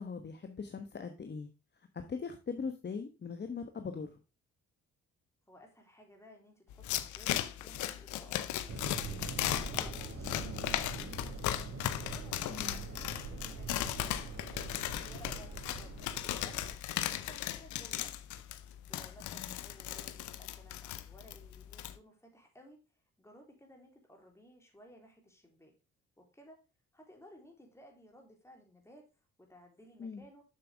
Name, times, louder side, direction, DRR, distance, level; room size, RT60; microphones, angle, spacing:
voice 1, 0.0-1.5 1.7-4.2 12.5-12.8 19.2-19.5 30.0-30.2, left 5 dB, 35° left, 7 dB, 1.2 m, -41 dB
voice 2, 5.5-11.5 11.9-14.0 14.5-16.8 17.2-18.1 18.9-25.7 26.2-26.6 26.9-30.4, equal, 10° left, 1 dB, 3.5 m, -58 dB
sound 1, 6.7-22.0, left 12 dB, 80° left, 0.8 m, -37 dB
sound 2, 8.7-16.8, right 4 dB, 65° right, 2.4 m, -44 dB
7.8 x 6.7 x 3.5 m, 0.30 s
supercardioid pair, 70°, 29 cm